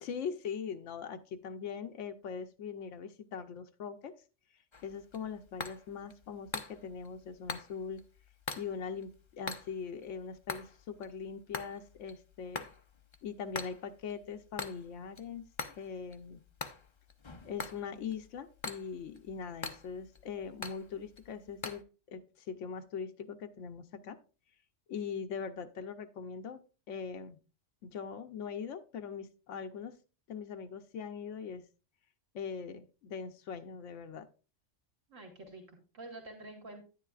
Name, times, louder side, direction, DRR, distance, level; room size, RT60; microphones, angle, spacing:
voice 1, 0.0-4.1 4.8-8.0 8.6-12.7 13.2-15.5 15.8-16.4 17.4-24.2 24.9-26.6 26.9-27.4 27.8-30.0 30.3-31.6 32.3-34.3, left 6 dB, 80° left, 6 dB, 1.1 m, -41 dB
sound 1, 4.7-21.8, left 4 dB, 30° left, 0.5 m, -45 dB
voice 2, 35.1-36.8, right 2 dB, 90° right, 2 dB, 2.2 m, -48 dB
9.9 x 9.9 x 2.4 m, 0.33 s
omnidirectional pair, 1.3 m